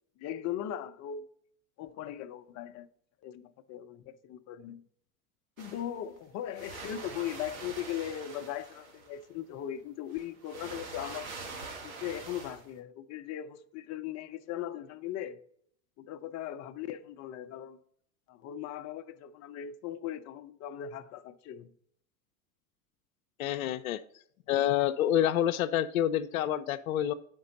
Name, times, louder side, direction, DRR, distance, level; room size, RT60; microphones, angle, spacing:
voice 1, 0.2-1.3 1.8-2.9 3.2-4.8 5.6-11.3 11.8-15.4 16.0-17.8 18.3-21.7, left 10 dB, 40° left, 0.6 m, -39 dB
sound 1, 5.6-6.2 6.5-9.2 10.1-12.7, right 4 dB, 80° right, 1.7 m, -44 dB
voice 2, 23.4-24.0 24.5-27.1, left 11 dB, 80° left, 0.6 m, -28 dB
9.4 x 5.2 x 4.0 m
hypercardioid pair, 85°, 41 cm